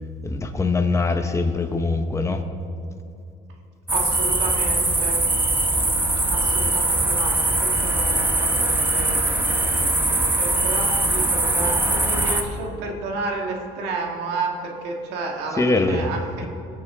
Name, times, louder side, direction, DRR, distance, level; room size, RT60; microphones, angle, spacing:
voice 1, 0.2-2.4 15.6-16.1, left 3 dB, 15° left, 6 dB, 0.9 m, -22 dB
sound 1, 3.9-12.4, right 2 dB, 10° right, 1.0 m, -21 dB
voice 2, 3.9-5.3 6.3-16.5, right 3 dB, 90° right, 1 dB, 1.7 m, -31 dB
18.5 x 7.1 x 3.7 m, 2.5 s
cardioid pair, 110°, 17 cm